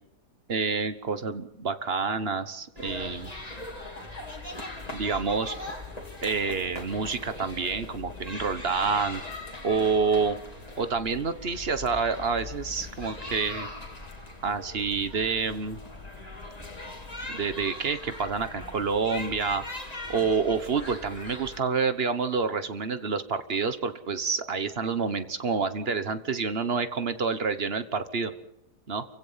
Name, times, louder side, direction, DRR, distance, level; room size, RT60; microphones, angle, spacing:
voice 1, 0.5-3.3 4.9-5.5 6.2-9.2 9.6-10.4 10.8-13.7 14.4-15.8 17.3-19.6 20.1-28.3 28.9-29.0, right 5 dB, 40° right, 11 dB, 1.3 m, -28 dB
sound 1, 2.8-21.6, left 2 dB, 20° left, 2.9 m, -40 dB
29.5 x 16.0 x 5.7 m, 0.88 s
omnidirectional pair, 1.8 m